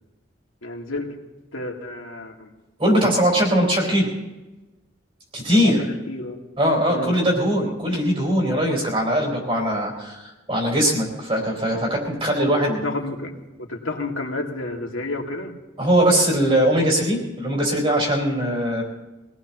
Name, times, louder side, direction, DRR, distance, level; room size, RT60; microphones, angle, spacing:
voice 1, 0.6-1.1 1.5-2.5 4.0-4.1 5.5-6.4 6.9-7.2 12.8-15.5, left 2 dB, 80° left, 0 dB, 2.2 m, -31 dB
voice 2, 2.8-4.1 5.3-5.9 6.6-12.9 15.8-18.8, equal, 25° right, -1 dB, 4.6 m, -21 dB
24.0 x 18.0 x 3.0 m, 1.1 s
head